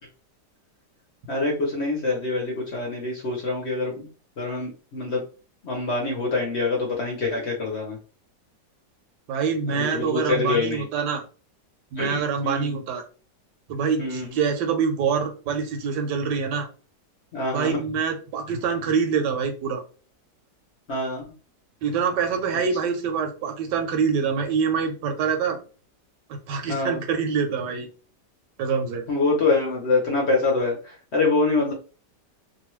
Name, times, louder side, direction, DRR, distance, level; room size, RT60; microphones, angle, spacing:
voice 1, 1.3-4.1 4.4-5.2 5.6-8.0 9.7-10.8 12.0-12.8 14.0-14.3 17.3-17.8 20.9-21.2 26.7-27.0 29.1-31.7, left 3 dB, 50° left, -1 dB, 0.9 m, -25 dB
voice 2, 9.3-11.2 11.9-13.0 13.7-16.7 17.5-19.8 21.8-25.6 26.5-27.9 28.6-29.0, right 6 dB, 85° right, 5 dB, 1.3 m, -25 dB
3.0 x 2.2 x 3.0 m, 0.36 s
omnidirectional pair, 1.9 m